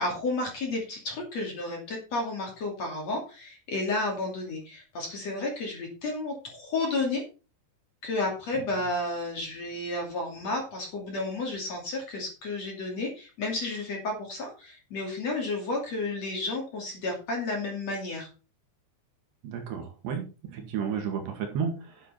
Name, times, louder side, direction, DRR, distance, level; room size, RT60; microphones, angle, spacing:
voice 1, 0.0-7.2 8.0-18.3, left 2 dB, 40° left, 0 dB, 3.2 m, -32 dB
voice 2, 19.4-22.0, right 7 dB, 70° right, 4 dB, 3.9 m, -32 dB
10.0 x 7.8 x 4.4 m, 0.33 s
omnidirectional pair, 5.3 m